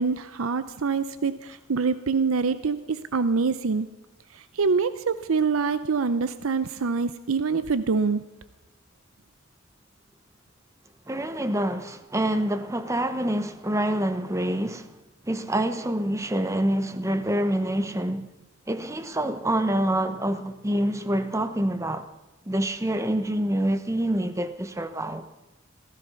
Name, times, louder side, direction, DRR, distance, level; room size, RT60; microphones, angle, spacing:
voice 1, 0.0-3.9 4.3-8.2, right 5 dB, 90° right, 0.6 m, -25 dB
voice 2, 11.1-14.9 15.2-18.3 18.7-22.1 22.5-25.3, right 1 dB, 15° right, 0.9 m, -26 dB
17.0 x 15.0 x 5.6 m
head